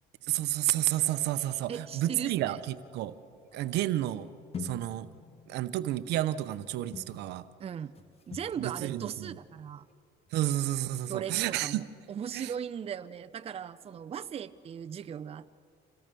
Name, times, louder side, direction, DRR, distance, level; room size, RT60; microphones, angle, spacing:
voice 1, 0.3-3.1 3.5-4.3 4.6-5.1 5.5-7.4 8.6-9.3 10.3-11.8 12.3-12.5, right 14 dB, 80° right, 13 dB, 0.8 m, -30 dB
Piano, 1.0-7.2, equal, 5° left, 3.2 m, -58 dB
voice 2, 1.7-2.6 7.6-7.9 8.3-9.9 11.1-15.6, right 8 dB, 35° right, 10 dB, 0.6 m, -38 dB
sound 1, 2.4-3.8 4.5-9.6 9.9-10.0 10.3-10.4 10.7-10.8 10.9-11.3, left 5 dB, 35° left, 1.5 m, -47 dB
27.5 x 17.0 x 6.9 m, 2.2 s
cardioid pair, 110°, 17 cm